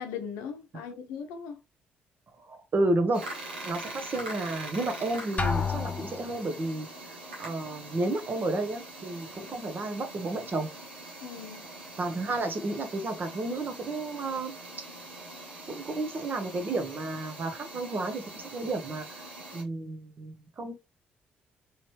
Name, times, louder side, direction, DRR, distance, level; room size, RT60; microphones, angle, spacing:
voice 1, 0.0-1.6 11.2-11.7, left 7 dB, 70° left, 0.7 m, -39 dB
voice 2, 2.5-3.2 3.6-6.9 7.4-10.7 12.0-14.5 15.7-19.1 19.5-20.7, right 2 dB, 40° right, 1.1 m, -31 dB
sound 1, 3.1-19.6, right 2 dB, 85° right, 1.2 m, -43 dB
Drum, 5.4-6.6, left 5 dB, 30° left, 0.8 m, -30 dB
4.0 x 3.2 x 3.1 m
figure-of-eight pair, 45°, 5 cm